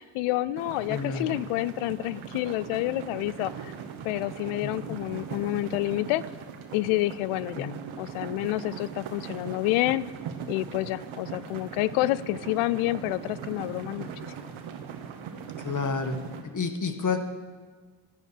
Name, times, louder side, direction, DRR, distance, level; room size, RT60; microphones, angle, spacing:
voice 1, 0.0-3.7 4.0-6.2 6.7-7.7 8.0-10.0 10.5-14.1, left 17 dB, 85° left, 19 dB, 0.5 m, -28 dB
sound 1, 0.6-16.4, right 7 dB, 70° right, 1.4 m, -40 dB
voice 2, 0.9-1.3 4.6-5.0 7.6-7.8 15.6-16.2 16.5-17.2, left 4 dB, 40° left, 7 dB, 1.7 m, -30 dB
13.0 x 9.8 x 6.5 m, 1.5 s
hypercardioid pair, 45°, 49 cm